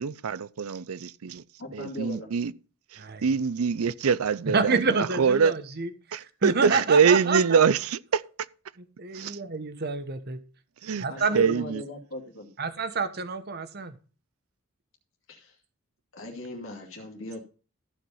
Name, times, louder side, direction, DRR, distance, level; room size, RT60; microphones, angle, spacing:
voice 1, 0.0-1.4 1.7-2.5 2.9-5.5 6.1-8.2 9.1-9.4 10.8-11.1 11.3-11.8, right 6 dB, 80° right, 0.5 m, -24 dB
voice 2, 1.6-2.3 11.1-12.5 15.3-15.6 16.1-17.4, left 1 dB, 65° left, 2.3 m, -39 dB
voice 3, 4.5-7.6 8.8-10.4 11.0-11.5 12.6-14.0, right 4 dB, 45° right, 1.1 m, -28 dB
14.5 x 5.1 x 5.5 m
head